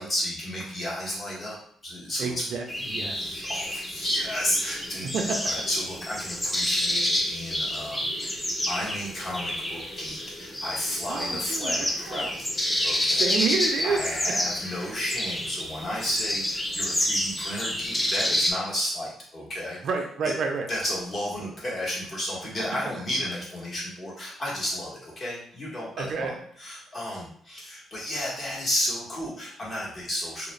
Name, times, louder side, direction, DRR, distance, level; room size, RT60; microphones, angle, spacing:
voice 1, 0.0-1.6 1.8-2.4 3.2-5.1 5.4-13.4 13.8-19.8 20.2-20.3 20.7-30.5, equal, 40° left, -5 dB, 1.1 m, -32 dB
voice 2, 2.2-3.4 5.0-5.2 11.1-12.3 13.1-14.0 19.8-20.7 26.0-26.3, right 5 dB, 65° right, 3 dB, 0.4 m, -29 dB
sound 1, 2.7-18.5, left 1 dB, 15° left, 0.5 m, -29 dB
2.4 x 2.0 x 3.0 m, 0.62 s
cardioid pair, 90°, 0 cm